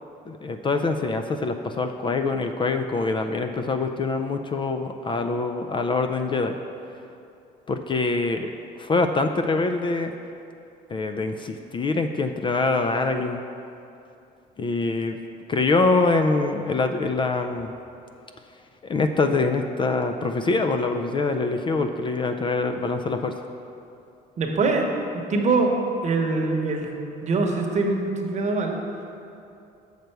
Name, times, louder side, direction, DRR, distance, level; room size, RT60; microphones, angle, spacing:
voice 1, 0.3-6.6 7.7-8.5 8.8-10.1 10.9-13.4 14.6-15.2 15.5-17.7 18.8-23.3, left 3 dB, 30° left, 6 dB, 0.4 m, -24 dB
voice 2, 24.4-25.7 26.0-26.9 27.2-28.8, right 3 dB, 45° right, 2 dB, 1.0 m, -23 dB
6.7 x 6.5 x 4.5 m, 2.7 s
cardioid pair, 110°, 17 cm